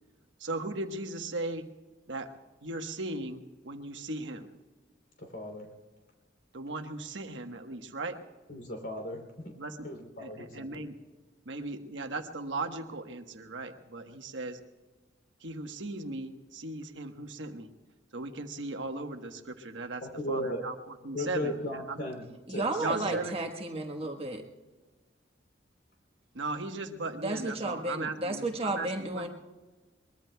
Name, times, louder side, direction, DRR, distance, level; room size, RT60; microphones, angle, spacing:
voice 1, 0.4-1.6 2.1-2.3 2.6-4.5 6.5-8.2 9.6-9.9 10.2-11.0 11.4-14.6 15.4-17.7 18.1-20.0 20.3-22.1 22.8-23.4 23.9-24.1 26.3-29.3, right 2 dB, 75° right, 6 dB, 1.3 m, -37 dB
voice 2, 5.2-5.7 8.5-9.2 9.8-10.8 20.0-20.6 21.1-22.2 22.5-23.2, left 1 dB, 65° left, 3 dB, 3.1 m, -36 dB
voice 3, 22.5-24.4 27.2-29.3, right 2 dB, 30° right, 3 dB, 1.3 m, -33 dB
23.0 x 21.5 x 2.3 m, 1.2 s
head